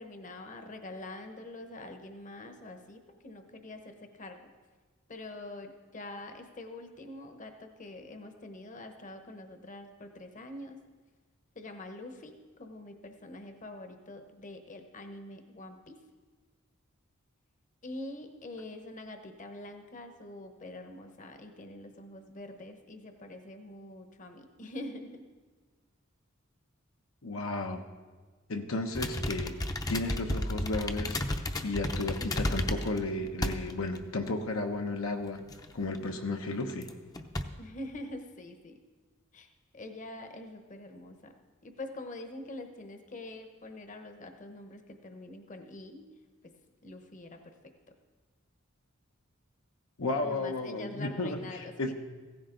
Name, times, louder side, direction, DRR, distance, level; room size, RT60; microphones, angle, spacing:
voice 1, 0.0-4.4 5.1-10.8 11.5-16.0 17.8-25.3 37.6-38.8 39.3-39.5 39.7-41.3 41.6-46.1 46.4-46.5 46.8-47.7 50.2-51.9, left 2 dB, 40° left, 6 dB, 1.0 m, -45 dB
voice 2, 27.2-27.8 28.5-29.6 29.9-31.2 31.6-35.4 35.7-36.9 50.0-51.9, left 2 dB, 75° left, 4 dB, 1.0 m, -33 dB
sound 1, 28.9-33.0 33.4-34.0 34.3-34.4 35.5-36.0 36.7-36.9 37.1-37.4, left 1 dB, 20° left, 0.7 m, -32 dB
16.0 x 14.5 x 3.9 m, 1.4 s
head